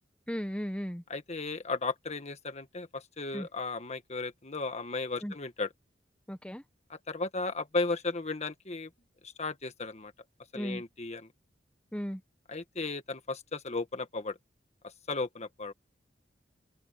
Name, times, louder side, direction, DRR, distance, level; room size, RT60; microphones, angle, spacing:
voice 1, 0.3-1.0 3.3-3.5 5.2-5.3 6.3-6.6 10.5-10.8 11.9-12.2, equal, 5° left, 1.1 m, -35 dB
voice 2, 1.1-5.7 6.9-8.9 9.2-10.1 10.5-11.3 12.5-14.4 14.8-15.7, left 3 dB, 40° left, 1.6 m, -35 dB
open air
head